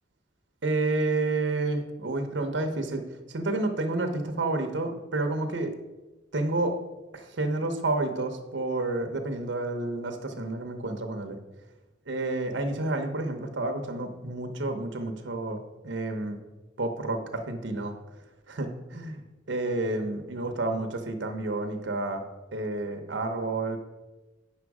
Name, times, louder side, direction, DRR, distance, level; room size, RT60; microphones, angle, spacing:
voice 1, 0.6-5.7 6.3-6.8 7.1-11.4 12.1-16.4 16.8-18.0 18.5-22.2 22.5-23.8, right 2 dB, 70° right, 5 dB, 0.9 m, -30 dB
8.8 x 6.2 x 4.8 m, 1.1 s
head